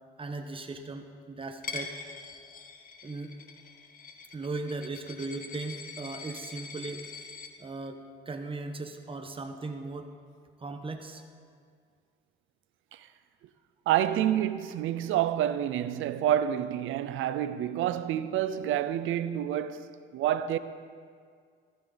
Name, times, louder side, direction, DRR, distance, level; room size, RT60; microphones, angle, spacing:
voice 1, 0.2-1.9 3.0-3.4 4.3-7.0 7.6-10.1 10.6-11.2, right 3 dB, 25° right, 1.2 m, -38 dB
Coin (dropping), 1.6-7.5, left 5 dB, 45° left, 1.2 m, -43 dB
voice 2, 13.9-20.6, right 11 dB, 85° right, 0.6 m, -28 dB
14.5 x 14.5 x 4.0 m
cardioid pair, 90°, 20 cm